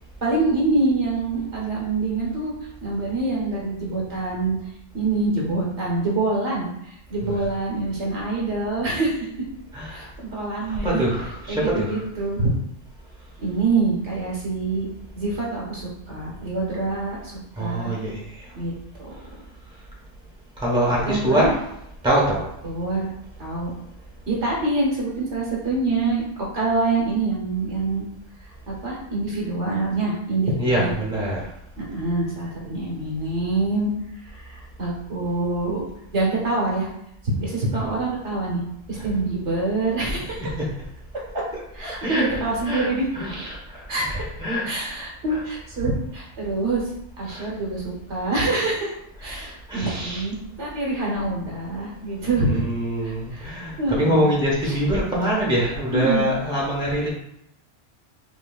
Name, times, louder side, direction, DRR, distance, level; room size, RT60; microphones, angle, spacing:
voice 1, 0.2-2.5 2.8-4.6 4.9-9.3 9.9-11.0 11.5-12.5 13.4-14.9 15.1-17.3 17.6-17.9 18.5-18.7 19.0-19.1 21.1-21.5 22.6-23.1 23.4-23.7 24.3-26.2 26.5-28.1 28.7-30.9 31.8-33.9 34.3-35.8 36.1-36.9 37.4-38.6 38.9-40.5 41.7-43.1 43.9-44.2 44.6-46.8 47.2-48.9 49.2-52.6 53.0-53.5 53.8-54.3 54.6-54.7 55.9-56.2, right 3 dB, 75° right, -4 dB, 1.5 m, -25 dB
voice 2, 9.7-10.1 10.6-12.0 17.6-18.4 20.6-21.6 22.0-22.4 30.6-31.4 37.7-37.8 39.0-39.1 40.0-40.7 41.8-44.8 45.3-45.4 47.3-47.5 49.7-50.2 52.3-57.1, right 1 dB, 5° right, -5 dB, 1.0 m, -24 dB
5.8 x 2.9 x 2.4 m, 0.78 s
omnidirectional pair, 1.2 m